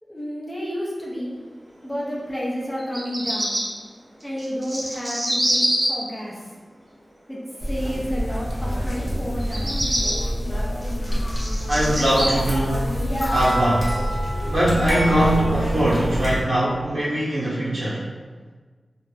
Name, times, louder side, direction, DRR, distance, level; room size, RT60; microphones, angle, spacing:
voice 1, 0.0-1.4 1.8-3.6 4.2-6.5 7.3-9.8, equal, 5° left, -6 dB, 0.6 m, -30 dB
Bird vocalization bird call bird song, 2.8-3.6 4.4-5.9 9.4-10.1 10.8-12.3, equal, 40° right, 0.7 m, -25 dB
sound 1, 7.6-16.4, equal, 40° left, 0.8 m, -26 dB
voice 2, 11.7-12.9 13.3-13.9 14.5-18.1, right 1 dB, 85° right, -9 dB, 1.0 m, -21 dB
2.5 x 2.0 x 3.1 m, 1.4 s
wide cardioid pair, 80°, 0 cm